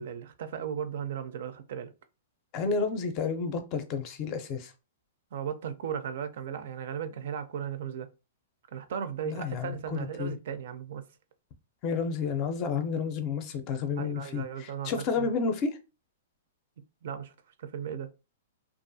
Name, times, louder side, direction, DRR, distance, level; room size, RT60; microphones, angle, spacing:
voice 1, 0.0-1.9 5.3-8.1 8.7-11.0 14.0-15.3 17.0-17.3 17.6-18.1, right 8 dB, 65° right, 0.4 m, -36 dB
voice 2, 2.5-4.7 9.2-10.3 11.8-15.8, left 5 dB, 35° left, 0.5 m, -31 dB
2.4 x 2.3 x 2.6 m
hypercardioid pair, 145°, 0 cm